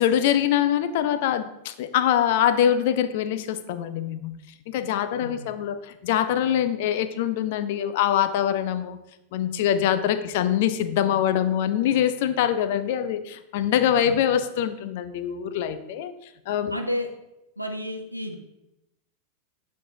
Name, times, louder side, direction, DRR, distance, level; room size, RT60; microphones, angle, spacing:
voice 1, 0.0-4.4 4.7-9.0 9.3-16.1 16.5-16.8, left 10 dB, 50° left, 12 dB, 0.4 m, -24 dB
voice 2, 16.7-17.1 17.6-18.4, left 1 dB, 90° right, 4 dB, 0.6 m, -31 dB
8.2 x 4.6 x 2.7 m, 0.90 s
figure-of-eight pair, 90°, 0 cm